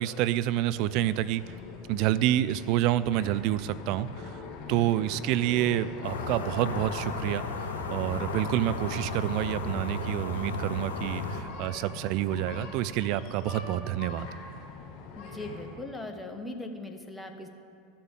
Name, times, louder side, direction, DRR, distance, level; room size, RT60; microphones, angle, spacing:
voice 1, 0.0-1.5 1.9-7.5 7.9-14.3, right 13 dB, 55° right, 15 dB, 0.4 m, -28 dB
sound 1, 0.7-15.8, left 4 dB, 50° left, 2.9 m, -44 dB
sound 2, 6.0-11.4, left 3 dB, 80° left, 1.3 m, -34 dB
voice 2, 15.2-17.5, left 2 dB, 10° left, 4 dB, 1.3 m, -39 dB
13.0 x 6.9 x 7.3 m, 2.5 s
hypercardioid pair, 85°, 0 cm